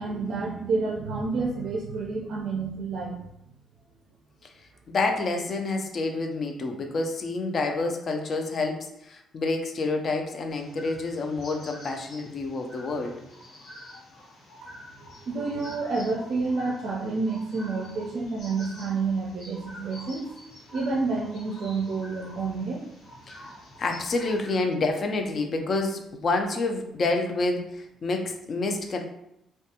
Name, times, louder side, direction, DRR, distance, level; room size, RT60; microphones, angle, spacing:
voice 1, 0.0-3.2 14.6-20.2 20.7-22.8, right 4 dB, 60° right, -1 dB, 0.4 m, -29 dB
voice 2, 4.9-13.1 23.3-23.4 23.8-29.0, left 3 dB, 45° left, 4 dB, 0.4 m, -28 dB
sound 1, 10.5-24.5, left 1 dB, 75° left, 1.0 m, -47 dB
2.5 x 2.2 x 2.7 m, 0.81 s
cardioid pair, 115°, 0 cm